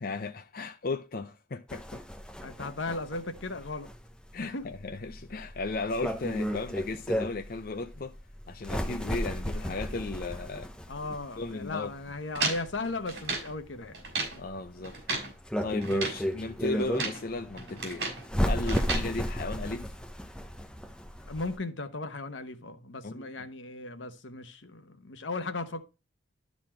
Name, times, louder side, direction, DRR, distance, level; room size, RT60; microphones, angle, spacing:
voice 1, 0.0-2.0 4.3-8.1 8.5-10.7 11.4-11.9 14.4-15.0 15.6-18.0 18.4-19.9 23.0-23.3, left 3 dB, 50° left, 0.5 m, -35 dB
sound 1, 1.7-21.5, equal, 5° left, 0.9 m, -34 dB
voice 2, 2.4-3.9 4.4-4.7 10.9-14.0 18.6-19.0 21.3-25.8, left 3 dB, 80° left, 1.0 m, -37 dB
sound 2, 12.3-13.5 13.9-14.4 14.8-15.3 15.8-16.2 16.8-17.2 17.6-18.2 18.7-19.1, right 3 dB, 60° right, 4.2 m, -33 dB
12.0 x 4.2 x 4.3 m
head